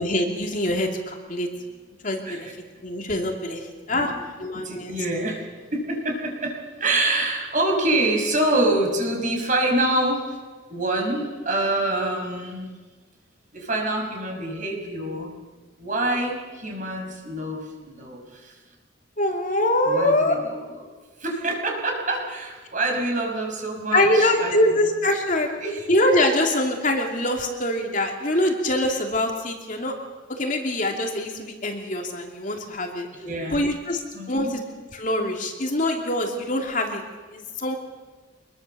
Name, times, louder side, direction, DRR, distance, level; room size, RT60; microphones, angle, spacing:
voice 1, 0.0-1.5 2.0-2.5 2.8-4.1 4.4-4.9 19.2-20.4 23.9-25.6 25.9-30.0 30.3-33.1 33.5-34.0 34.3-34.6 34.9-37.0 37.3-37.8, left 1 dB, 45° left, 2 dB, 2.8 m, -24 dB
voice 2, 4.5-10.4 10.7-12.7 13.5-15.3 15.8-18.5 19.9-20.9 21.2-24.5 25.6-25.9 33.2-33.6 34.1-34.5, right 2 dB, 40° right, 2 dB, 5.5 m, -26 dB
25.0 x 21.0 x 6.9 m, 1.3 s
head